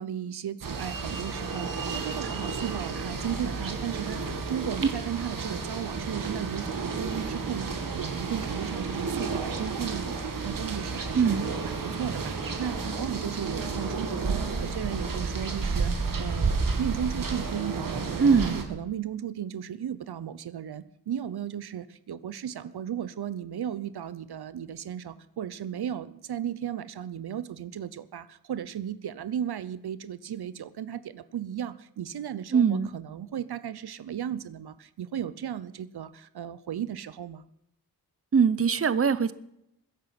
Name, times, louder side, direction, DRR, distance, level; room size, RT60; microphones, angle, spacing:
voice 1, 0.0-11.4 11.6-37.4, right 9 dB, 80° right, 15 dB, 0.8 m, -35 dB
sound 1, 0.6-18.6, right 4 dB, 60° right, 2.4 m, -31 dB
voice 2, 11.1-11.5 18.2-18.7 32.5-32.9 38.3-39.3, right 6 dB, 35° right, 16 dB, 0.8 m, -22 dB
21.0 x 10.5 x 6.0 m, 0.81 s
wide cardioid pair, 95°, 38 cm